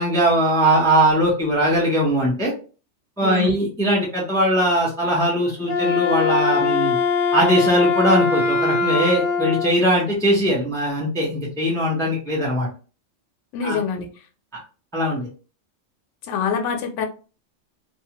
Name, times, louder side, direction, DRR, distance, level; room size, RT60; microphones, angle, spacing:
voice 1, 0.0-2.5 3.2-6.9 7.3-12.7 13.6-13.8 14.5-14.6 14.9-15.3, right 1 dB, 5° left, 0.7 m, -20 dB
voice 2, 3.2-3.5 13.5-14.1 16.2-17.1, left 6 dB, 90° left, 0.9 m, -25 dB
Wind instrument woodwind instrument, 5.6-9.7, left 4 dB, 50° left, 0.8 m, -21 dB
2.4 x 2.3 x 2.9 m
omnidirectional pair, 1.2 m